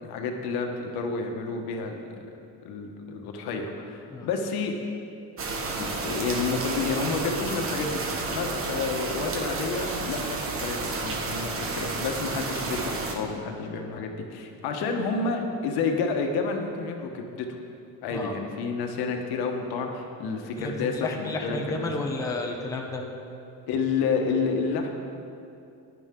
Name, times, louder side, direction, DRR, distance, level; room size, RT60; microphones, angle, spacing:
voice 1, 0.0-1.9 2.6-4.7 5.8-17.5 18.0-21.9 23.7-24.9, left 4 dB, 70° left, 3 dB, 1.4 m, -30 dB
sound 1, 5.4-13.2, right 3 dB, 35° right, 1.2 m, -31 dB
voice 2, 20.6-23.0, left 2 dB, 10° left, 0 dB, 0.8 m, -32 dB
15.0 x 10.5 x 3.8 m, 2.7 s
cardioid pair, 160°, 39 cm